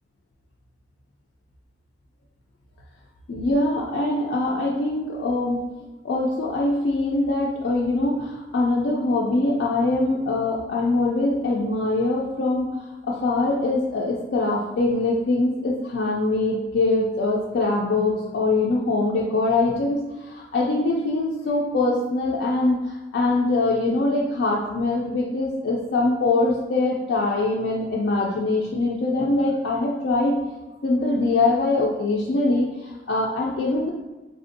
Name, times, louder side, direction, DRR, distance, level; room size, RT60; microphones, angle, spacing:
voice 1, 3.3-5.6 6.0-12.7 13.0-30.4 30.8-33.9, left 2 dB, 65° left, -4 dB, 0.4 m, -23 dB
3.4 x 2.5 x 2.5 m, 1.1 s
head